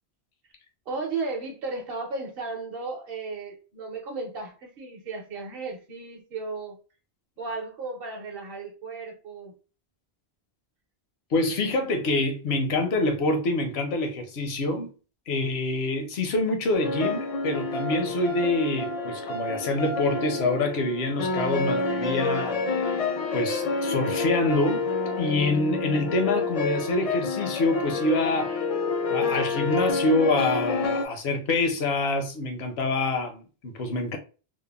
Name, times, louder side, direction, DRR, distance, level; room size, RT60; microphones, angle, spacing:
voice 1, 0.9-6.8 7.4-9.6, right 3 dB, 65° right, 0.9 m, -35 dB
voice 2, 11.3-14.9 15.3-24.8 25.2-28.6 29.1-34.2, left 2 dB, 75° left, 0.9 m, -26 dB
sound 1, 16.7-31.1, left 3 dB, 60° left, 0.4 m, -28 dB
3.3 x 2.0 x 2.2 m
omnidirectional pair, 1.1 m